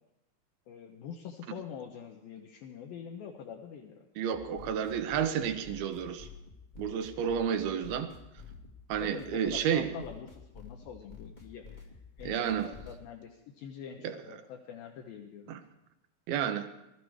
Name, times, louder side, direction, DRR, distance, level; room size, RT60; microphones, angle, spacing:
voice 1, 0.7-4.1 9.0-11.9 12.2-15.5, left 8 dB, 75° left, 1 dB, 2.7 m, -45 dB
voice 2, 4.2-6.3 6.8-8.1 8.9-9.9 12.3-12.7 14.0-14.4 15.5-15.6 16.3-16.7, right 8 dB, 75° right, 8 dB, 2.7 m, -31 dB
sound 1, 4.3-13.0, left 5 dB, 25° left, 1.0 m, -50 dB
20.0 x 13.5 x 4.8 m, 0.89 s
omnidirectional pair, 4.5 m